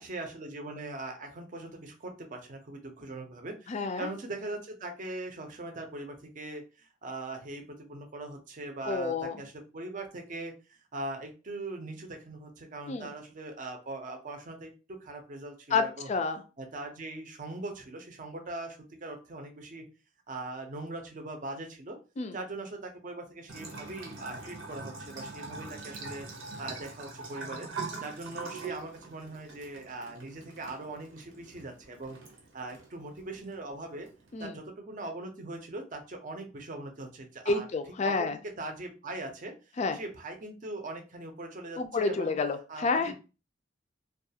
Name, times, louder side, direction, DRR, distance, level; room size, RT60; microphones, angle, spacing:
voice 1, 0.0-10.5 10.9-16.1 16.6-19.8 20.3-22.0 22.3-26.3 26.6-27.7 28.0-32.2 32.5-34.1 34.4-37.7 38.0-42.3 42.7-43.1, right 2 dB, 45° right, 4 dB, 0.6 m, -41 dB
voice 2, 3.7-4.1 8.9-9.4 12.9-13.1 15.7-16.4 22.2-22.4 34.3-34.6 37.5-38.4 39.8-40.0 41.8-43.1, left 4 dB, 35° left, 8 dB, 0.3 m, -29 dB
Bathtub (filling or washing) / Trickle dribble, 23.5-34.4, right 4 dB, 85° right, 0.7 m, -43 dB
2.3 x 2.3 x 2.7 m, 0.32 s
head